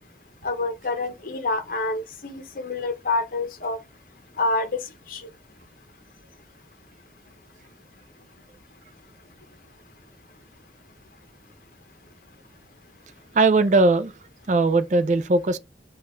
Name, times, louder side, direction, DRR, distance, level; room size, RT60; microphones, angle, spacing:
voice 1, 0.4-3.8 4.4-5.3, left 2 dB, 50° left, 0.8 m, -27 dB
voice 2, 13.3-14.1 14.5-15.6, right 3 dB, 40° right, 0.4 m, -19 dB
5.1 x 2.3 x 4.2 m
head